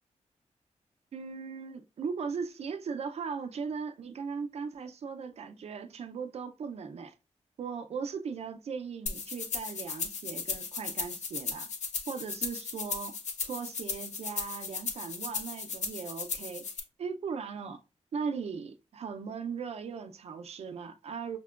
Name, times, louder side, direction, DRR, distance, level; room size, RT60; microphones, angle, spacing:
voice 1, 1.1-7.1 7.6-11.7 12.1-16.6 17.0-17.8 18.1-21.4, right 5 dB, 60° right, 0.5 m, -38 dB
sound 1, 9.1-16.8, left 5 dB, 75° left, 0.6 m, -36 dB
5.8 x 2.2 x 2.3 m
wide cardioid pair, 170°, 12 cm